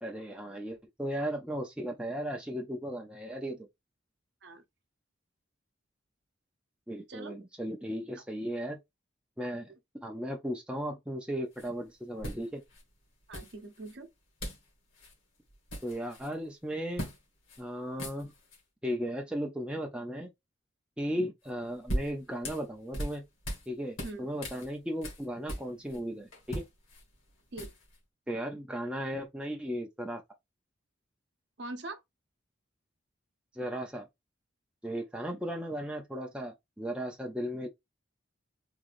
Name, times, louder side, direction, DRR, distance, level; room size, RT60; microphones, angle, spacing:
voice 1, 0.0-3.7 6.9-8.8 9.4-12.6 15.8-17.1 17.6-18.3 18.8-20.3 21.0-23.2 23.7-26.6 28.3-30.2 33.5-34.1 34.8-37.7, equal, 5° right, 0.5 m, -36 dB
sound 1, 11.5-11.7 12.2-12.8 13.3-13.9 14.4-14.7 14.9-15.1 15.5-16.3 17.0-17.2 17.5-17.6 17.9-18.6 21.5-23.7 24.0-26.0 26.3-28.0, equal, 85° left, 1.6 m, -39 dB
voice 2, 13.3-14.1 24.0-24.3 27.5-27.7 31.6-32.0, right 2 dB, 60° right, 0.8 m, -42 dB
3.7 x 3.2 x 2.5 m
head